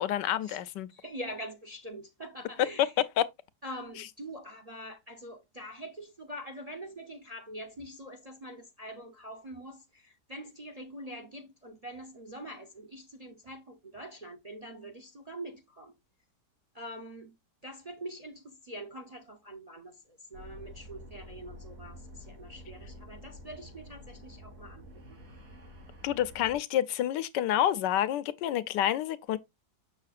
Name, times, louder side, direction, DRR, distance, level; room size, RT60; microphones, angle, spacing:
voice 1, 0.0-0.9 3.2-3.3 26.0-29.4, left 11 dB, 80° left, 1.3 m, -28 dB
voice 2, 0.9-3.0 3.6-15.9 16.7-17.3 17.6-25.2, equal, 35° right, 0.6 m, -44 dB
sound 1, 20.3-26.6, left 1 dB, 50° right, 3.4 m, -49 dB
6.9 x 6.6 x 2.4 m
omnidirectional pair, 1.9 m